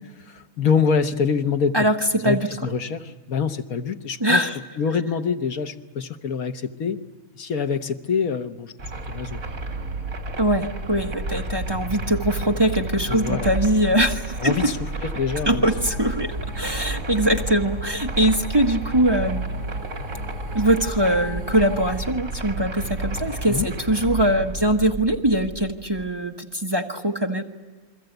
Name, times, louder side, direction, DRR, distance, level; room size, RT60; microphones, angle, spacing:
voice 1, 0.2-1.9 2.2-4.5 4.8-7.0 7.3-8.7 9.1-9.4 13.1-13.5 14.4-15.7 23.5-23.7, left 6 dB, 80° left, 8 dB, 1.6 m, -25 dB
voice 2, 1.7-2.5 4.2-4.6 10.4-14.7 15.5-19.4 20.5-27.4, right 1 dB, 20° right, 3 dB, 1.1 m, -22 dB
sound 1, 8.8-26.1, right 2 dB, 75° right, 2.7 m, -31 dB
sound 2, 15.6-22.0, equal, 20° left, 1.7 m, -41 dB
29.0 x 22.5 x 8.0 m, 1.3 s
omnidirectional pair, 1.5 m